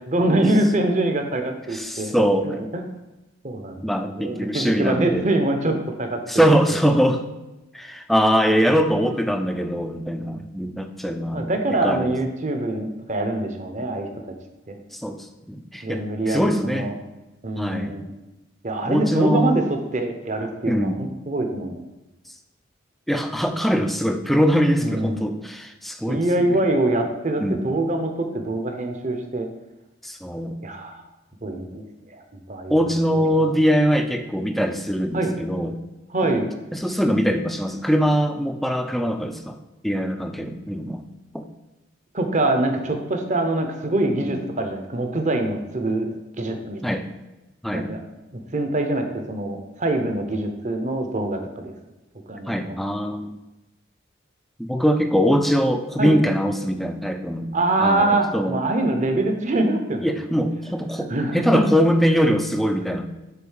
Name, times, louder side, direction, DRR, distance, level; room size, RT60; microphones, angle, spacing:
voice 1, 0.0-2.2 2.4-2.8 3.4-6.8 8.5-8.6 11.3-14.3 14.7-14.8 15.8-16.9 17.4-18.1 18.6-21.8 24.8-25.3 26.1-29.5 30.6-31.0 31.4-33.5 35.1-35.4 36.1-36.5 42.1-46.8 47.7-48.0 48.3-51.7 52.3-52.8 56.0-56.2 57.5-60.1 61.1-61.7, right 2 dB, 35° right, 5 dB, 0.8 m, -24 dB
voice 2, 1.7-2.5 3.8-5.2 6.3-7.2 7.7-11.5 11.8-12.1 14.9-16.9 17.6-18.0 18.9-19.6 20.7-21.0 23.1-26.6 27.4-27.6 30.0-30.6 32.7-35.8 36.2-36.3 36.7-39.6 39.8-41.0 41.3-41.5 44.2-44.4 46.8-47.0 47.6-47.9 52.5-53.4 54.6-57.5 57.8-58.6 60.0-63.1, equal, ahead, 6 dB, 0.4 m, -22 dB
6.9 x 3.8 x 6.4 m, 1.0 s
head